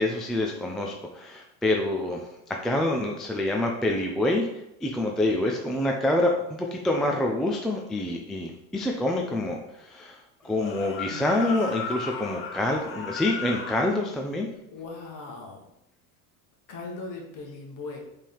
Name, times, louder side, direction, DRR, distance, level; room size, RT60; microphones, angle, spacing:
voice 1, 0.0-2.2 2.5-4.5 4.8-10.2 10.4-14.5, left 1 dB, ahead, 1 dB, 0.3 m, -26 dB
sound 1, 10.5-13.9, left 5 dB, 30° left, 0.7 m, -35 dB
voice 2, 11.1-11.5 14.7-15.7 16.7-18.0, left 3 dB, 45° left, 0 dB, 1.7 m, -38 dB
5.3 x 3.5 x 5.4 m, 0.83 s
supercardioid pair, 130°, 42 cm